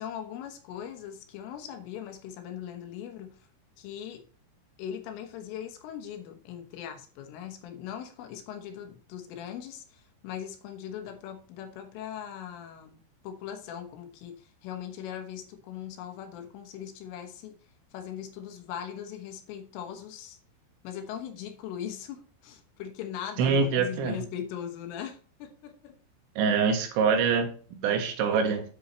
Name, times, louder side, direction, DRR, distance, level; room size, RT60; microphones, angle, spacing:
voice 1, 0.0-3.5 3.8-4.2 4.8-17.6 17.9-20.4 20.8-26.0, left 9 dB, 75° left, 5 dB, 3.6 m, -40 dB
voice 2, 23.4-24.2 26.4-28.6, right 5 dB, 70° right, 4 dB, 3.7 m, -25 dB
9.8 x 7.9 x 3.1 m, 0.42 s
omnidirectional pair, 5.9 m